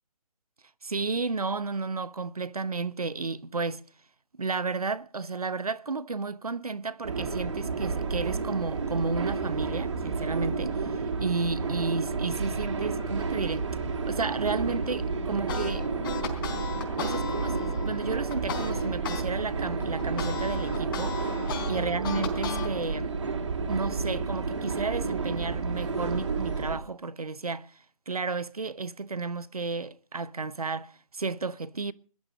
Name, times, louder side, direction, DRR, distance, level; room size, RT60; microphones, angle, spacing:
voice 1, 0.8-3.8 4.4-13.7 14.1-15.9 17.0-21.2 21.7-23.2 23.7-27.7 28.1-31.9, right 4 dB, 75° right, 1.0 m, -32 dB
sound 1, 7.0-26.8, right 4 dB, 50° right, 3.1 m, -31 dB
sound 2, 10.2-19.1, left 5 dB, 20° left, 2.1 m, -51 dB
sound 3, 15.5-19.2 19.6-22.7, left 6 dB, 35° left, 3.9 m, -36 dB
21.0 x 12.5 x 5.2 m
figure-of-eight pair, 145°, 19 cm